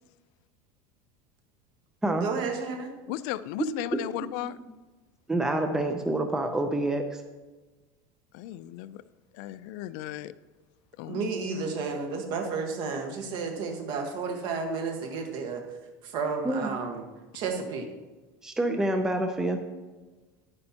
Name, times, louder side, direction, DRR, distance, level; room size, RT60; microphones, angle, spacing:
voice 1, 2.2-2.9 11.1-15.6 16.0-17.0 17.3-17.9, right 4 dB, 50° right, 1.5 m, -32 dB
voice 2, 3.1-4.6 8.3-9.0 9.3-10.3 11.0-11.2, left 14 dB, 65° left, 0.4 m, -35 dB
voice 3, 5.3-7.2 16.4-16.7 18.4-19.6, right 1 dB, 5° right, 0.5 m, -27 dB
10.5 x 9.7 x 2.9 m
cardioid pair, 155°, 10 cm